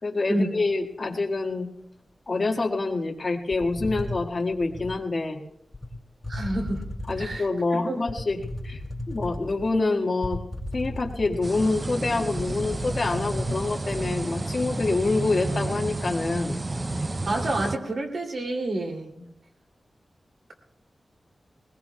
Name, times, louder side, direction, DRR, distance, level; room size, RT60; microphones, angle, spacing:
voice 1, 0.0-1.7 2.3-5.4 7.1-8.4 8.6-8.8 9.1-10.4 10.7-16.6 19.2-19.3, left 3 dB, 45° left, 1 dB, 1.7 m, -26 dB
sound 1, 3.5-5.0 5.7-5.9 6.2-7.4 8.1-9.7 10.2-11.7 12.0-12.1 12.4-13.6, left 1 dB, 30° left, 4.8 m, -35 dB
voice 2, 6.3-6.8 7.2-7.4 7.7-8.0 17.3-19.1, right 1 dB, 70° right, 1 dB, 2.7 m, -28 dB
sound 2, 11.4-17.8, right 2 dB, 30° right, 0.5 m, -31 dB
21.0 x 20.5 x 2.3 m, 0.77 s
wide cardioid pair, 115°, 0 cm